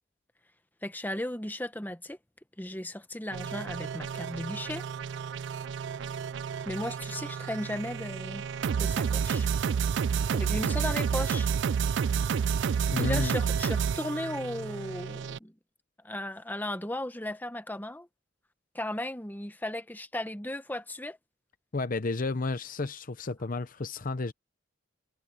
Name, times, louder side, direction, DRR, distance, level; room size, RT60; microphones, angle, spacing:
voice 1, 0.8-2.2 2.6-4.8 6.6-8.4 8.8-9.5 10.3-11.5 13.0-15.5 16.0-18.1 18.7-21.2, left 1 dB, 10° left, 1.1 m, -36 dB
sound 1, 3.3-15.4, right 6 dB, 65° right, 0.4 m, -30 dB
voice 2, 12.9-13.4 21.7-24.3, left 3 dB, 45° left, 0.8 m, -31 dB
head